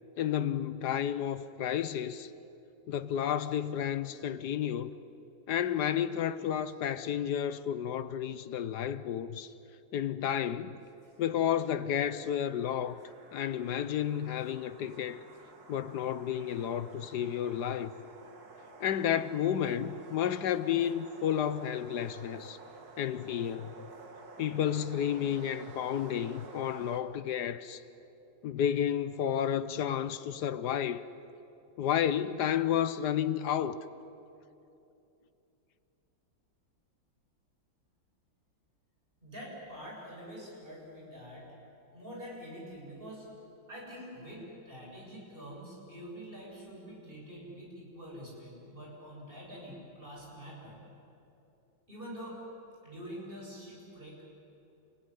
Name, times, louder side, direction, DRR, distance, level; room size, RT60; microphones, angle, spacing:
voice 1, 0.2-2.3 2.9-4.9 5.5-9.5 9.9-10.8 11.2-13.0 13.3-15.2 15.7-17.9 18.8-22.6 23.0-23.7 24.4-27.8 28.4-31.0 31.8-33.8, left 9 dB, 65° left, 1.2 m, -31 dB
sound 1, 10.9-27.0, right 3 dB, 50° right, 2.4 m, -52 dB
voice 2, 39.2-41.5 41.9-43.3 43.7-50.8 51.9-52.4 52.8-54.2, equal, 25° right, 7.8 m, -46 dB
29.5 x 17.5 x 10.0 m
omnidirectional pair, 2.2 m